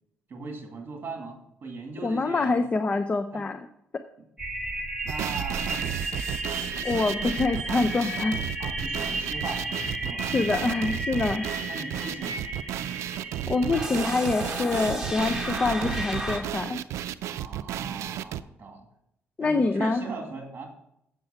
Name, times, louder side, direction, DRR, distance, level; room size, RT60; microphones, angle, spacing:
voice 1, 0.3-2.6 3.3-3.5 5.0-6.1 8.6-10.3 11.7-12.5 17.2-18.9 19.4-20.7, right 3 dB, 45° right, 2 dB, 2.3 m, -39 dB
voice 2, 2.0-3.7 6.8-8.4 10.2-11.5 13.5-16.8 19.4-20.0, left 3 dB, 30° left, 9 dB, 0.5 m, -26 dB
sound 1, 4.4-16.4, right 1 dB, 10° right, 2.1 m, -33 dB
sound 2, 5.1-18.4, right 11 dB, 90° right, 0.4 m, -33 dB
7.9 x 6.9 x 5.7 m, 0.77 s
cardioid pair, 110°, 5 cm